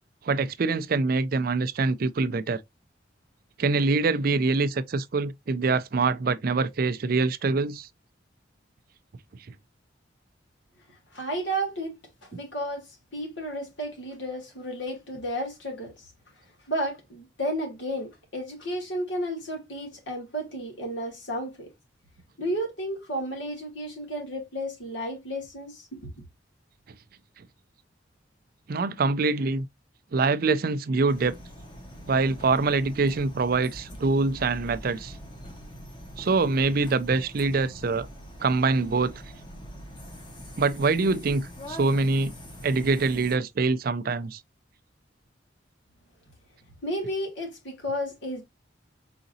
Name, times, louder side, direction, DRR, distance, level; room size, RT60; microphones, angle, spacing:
voice 1, 0.2-2.6 3.6-7.9 27.4-27.5 28.7-29.7 30.1-31.3 32.1-35.2 36.2-38.1 38.4-39.2 40.6-42.3 42.6-44.4, right 3 dB, 50° right, 0.4 m, -24 dB
voice 2, 11.1-12.0 12.2-15.9 16.7-21.7 22.4-26.1 46.8-48.4, equal, 75° left, 2.7 m, -32 dB
sound 1, 31.1-43.4, equal, 25° left, 1.2 m, -44 dB
5.0 x 3.9 x 2.6 m
head